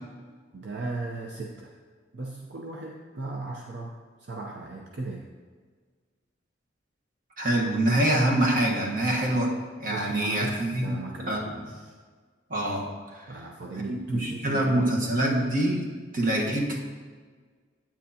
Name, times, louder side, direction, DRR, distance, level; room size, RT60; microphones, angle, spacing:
voice 1, 0.5-1.7 2.1-3.9 4.2-5.3 9.9-11.9 13.3-14.9, right 3 dB, 65° right, -1 dB, 0.7 m, -37 dB
voice 2, 7.4-11.0 11.3-11.4 12.5-13.3 13.9-16.8, right 1 dB, 50° right, -1 dB, 1.3 m, -25 dB
9.2 x 8.8 x 2.8 m, 1.5 s
head